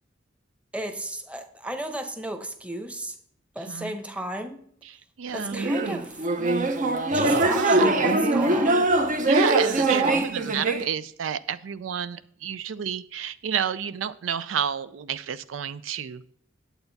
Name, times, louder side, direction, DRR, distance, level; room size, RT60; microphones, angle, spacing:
voice 1, 0.7-3.2 3.5-4.6 5.3-6.3 7.1-8.8 9.9-10.3, right 1 dB, 5° right, 6 dB, 0.9 m, -34 dB
voice 2, 4.8-5.6 7.3-7.8 9.2-16.2, right 8 dB, 80° right, 14 dB, 0.4 m, -30 dB
sound 1, 5.5-10.8, right 2 dB, 40° right, 0.8 m, -22 dB
9.1 x 8.0 x 4.0 m, 0.64 s
head